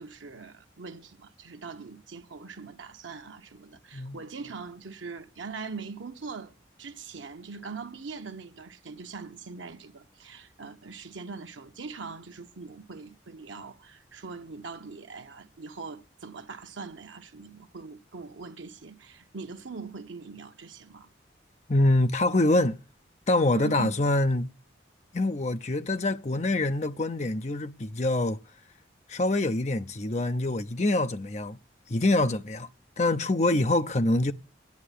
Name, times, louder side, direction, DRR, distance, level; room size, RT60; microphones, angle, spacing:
voice 1, 0.0-21.1 23.5-23.9 33.5-33.7, right 4 dB, 85° right, 0.9 m, -42 dB
voice 2, 21.7-22.8 23.3-24.5 25.1-28.4 29.1-31.6 31.9-32.7 33.0-34.3, left 2 dB, 35° left, 0.6 m, -25 dB
9.9 x 9.5 x 8.4 m
head